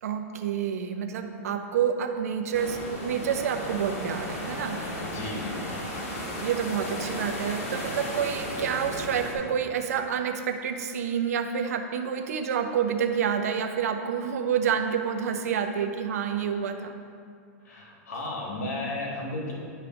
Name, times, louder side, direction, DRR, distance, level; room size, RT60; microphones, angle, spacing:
voice 1, 0.0-4.8 6.2-16.9, right 7 dB, 75° right, 5 dB, 0.8 m, -28 dB
sound 1, 2.5-9.3, left 1 dB, 60° left, 1.8 m, -35 dB
voice 2, 5.0-5.7 17.6-19.5, left 2 dB, 80° left, -2 dB, 1.6 m, -34 dB
9.8 x 3.3 x 5.1 m, 2.3 s
hypercardioid pair, 140°, 8 cm